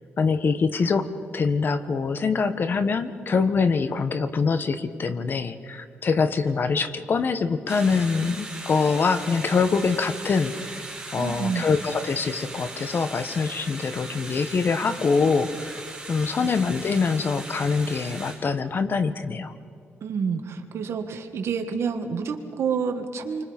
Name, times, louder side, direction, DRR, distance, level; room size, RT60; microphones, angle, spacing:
voice 1, 0.2-10.5 11.1-15.8 16.1-19.5, left 5 dB, 45° left, 11 dB, 1.4 m, -24 dB
sound 1, 7.7-18.4, right 2 dB, 10° right, 5.5 m, -38 dB
voice 2, 11.2-11.7 16.4-16.5 20.0-23.4, right 6 dB, 70° right, 6 dB, 1.9 m, -28 dB
28.0 x 25.0 x 5.4 m, 2.2 s
cardioid pair, 105°, 5 cm